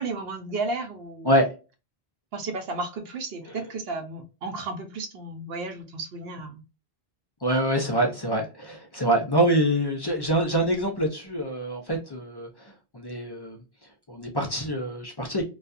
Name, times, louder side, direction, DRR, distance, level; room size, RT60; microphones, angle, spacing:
voice 1, 0.0-1.3 2.3-6.6, right 3 dB, 70° right, 0.9 m, -33 dB
voice 2, 7.4-13.6 14.1-15.4, right 1 dB, 35° left, 0.4 m, -25 dB
2.3 x 2.3 x 2.5 m
omnidirectional pair, 1.1 m